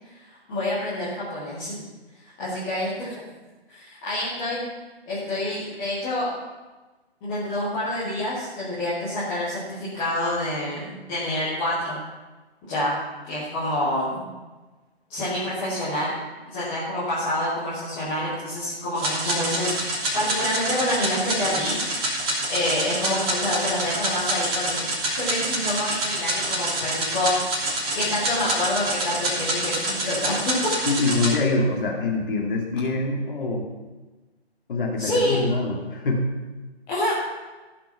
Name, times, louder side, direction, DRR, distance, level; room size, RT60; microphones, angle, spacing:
voice 1, 0.5-1.8 2.4-3.2 3.7-4.6 5.1-6.3 7.2-12.0 12.7-13.0 13.2-14.3 15.1-16.2 16.5-21.8 22.5-24.8 25.2-27.3 27.9-30.7 35.0-35.4 36.9-37.2, left 1 dB, 5° left, -14 dB, 0.4 m, -27 dB
sound 1, 18.9-31.3, right 1 dB, 35° right, 2.9 m, -27 dB
voice 2, 30.9-33.7 34.7-36.2, left 3 dB, 55° left, -1 dB, 2.4 m, -24 dB
14.5 x 6.0 x 5.8 m, 1.2 s
figure-of-eight pair, 140°, 33 cm